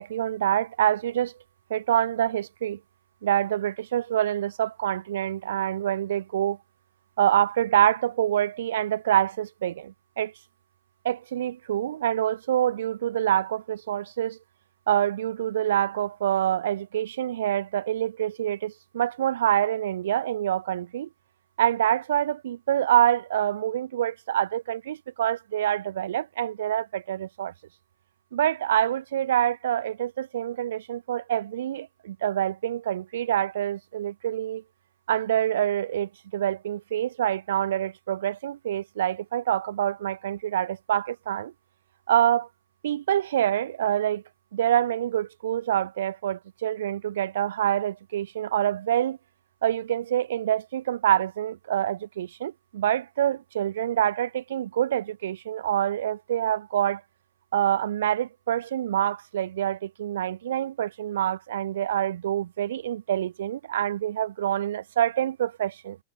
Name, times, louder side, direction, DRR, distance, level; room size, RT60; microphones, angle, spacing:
voice 1, 0.0-1.3 1.7-2.8 3.2-6.6 7.2-10.3 11.0-14.4 14.9-21.1 21.6-27.5 28.3-34.6 35.1-41.5 42.1-42.5 42.8-44.2 44.5-49.2 49.6-57.0 57.5-66.0, right 11 dB, 80° right, 1.2 m, -26 dB
hypercardioid pair, 110°, 0 cm